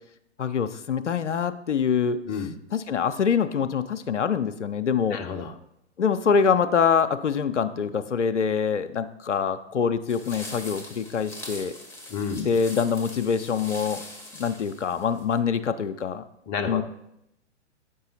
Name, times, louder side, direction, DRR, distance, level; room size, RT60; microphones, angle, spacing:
voice 1, 0.4-2.2 2.7-5.2 6.0-11.7 12.4-14.0 14.4-16.3 16.7-16.8, left 6 dB, 85° left, 10 dB, 0.6 m, -25 dB
voice 2, 5.1-5.6 12.1-12.5 16.5-16.8, left 5 dB, 30° left, 6 dB, 0.8 m, -30 dB
Walking through dry bushes, 10.1-15.4, left 2 dB, 5° left, 1.4 m, -42 dB
8.7 x 5.5 x 4.1 m, 0.79 s
figure-of-eight pair, 115°, 35 cm